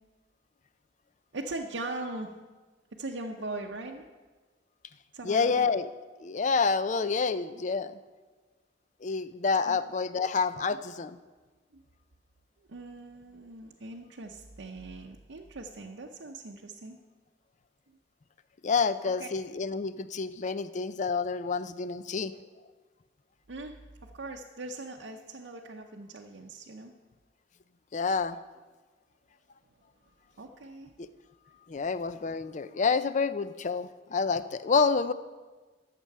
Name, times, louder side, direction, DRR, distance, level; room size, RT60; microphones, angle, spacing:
voice 1, 1.3-2.3 2.9-4.1 5.1-5.7 9.7-9.8 10.7-10.8 11.7-11.8 12.6-17.0 19.0-19.3 23.5-23.7 24.0-26.9 30.4-30.9, right 2 dB, 70° right, 0 dB, 0.7 m, -40 dB
voice 2, 5.2-5.9 6.2-7.9 9.0-11.2 18.6-22.3 27.9-28.4 31.7-35.1, left 5 dB, 40° left, 14 dB, 0.4 m, -28 dB
12.5 x 7.5 x 6.6 m, 1.3 s
head